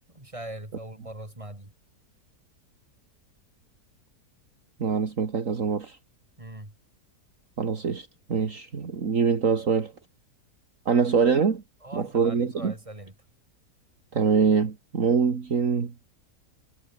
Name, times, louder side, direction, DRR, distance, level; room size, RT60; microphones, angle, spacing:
voice 1, 0.1-1.7 6.4-6.7 11.8-13.1, right 1 dB, 20° right, 5.0 m, -41 dB
voice 2, 4.8-6.0 7.6-9.9 10.9-11.6 11.9-12.7 14.1-15.9, right 5 dB, 50° right, 2.2 m, -24 dB
omnidirectional pair, 1.7 m